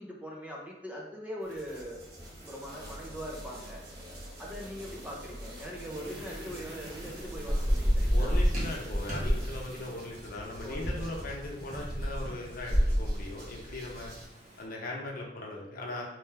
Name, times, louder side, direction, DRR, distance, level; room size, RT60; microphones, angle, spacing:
voice 1, 0.0-2.0 2.5-3.9 4.4-8.4 10.6-11.1, equal, 10° right, -2 dB, 0.6 m, -41 dB
sound 1, 1.4-14.3, equal, 60° right, 1.2 m, -47 dB
sound 2, 2.8-9.3, right 1 dB, 30° left, 1.2 m, -49 dB
Thunder / Rain, 6.7-14.4, equal, 45° right, 1.1 m, -30 dB
voice 2, 8.1-14.1 14.6-16.1, left 2 dB, 55° left, -1 dB, 0.8 m, -39 dB
3.4 x 3.3 x 3.3 m, 1.0 s
head